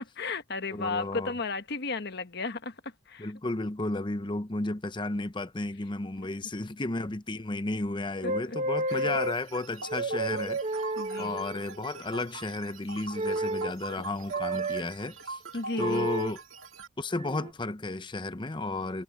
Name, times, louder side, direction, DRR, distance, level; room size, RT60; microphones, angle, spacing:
voice 1, 0.0-3.3 6.2-6.3 8.2-8.6 8.9-9.1 11.0-11.4 15.5-16.1, left 3 dB, 55° left, 1.3 m, -34 dB
voice 2, 0.7-1.3 3.2-10.8 11.2-15.4 15.8-16.4 17.0-19.0, left 2 dB, 25° left, 0.7 m, -33 dB
sound 1, 8.2-9.4 9.9-11.6 13.1-13.7 14.3-14.8 15.7-16.3 17.2-17.5, right 2 dB, 35° right, 1.3 m, -31 dB
sound 2, 8.9-16.9, right 3 dB, 90° right, 2.0 m, -43 dB
head